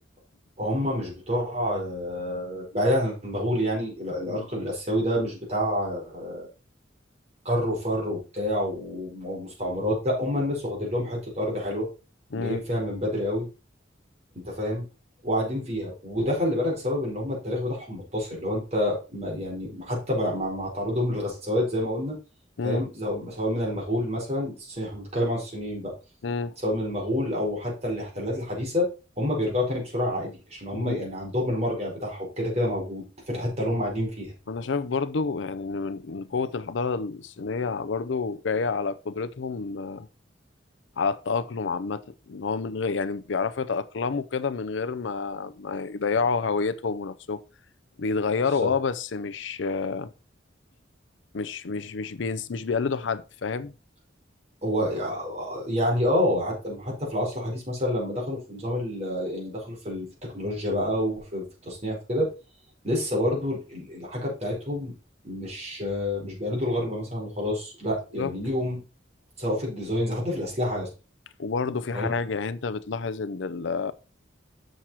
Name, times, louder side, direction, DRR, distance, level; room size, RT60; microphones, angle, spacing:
voice 1, 0.6-6.5 7.4-11.9 12.3-13.5 14.3-14.8 15.2-22.2 22.6-25.9 26.6-28.9 29.2-34.3 48.6-48.7 54.6-60.1 60.3-62.3 62.8-64.9 65.2-68.8 69.4-70.9 71.9-72.1, left 1 dB, 35° right, 4.8 m, -28 dB
voice 2, 12.3-12.6 22.6-22.9 26.2-26.6 30.7-31.0 34.5-40.1 41.0-47.4 48.0-50.1 51.3-53.7 68.1-68.3 71.4-73.9, left 4 dB, 75° left, 0.6 m, -29 dB
7.5 x 6.3 x 4.3 m
head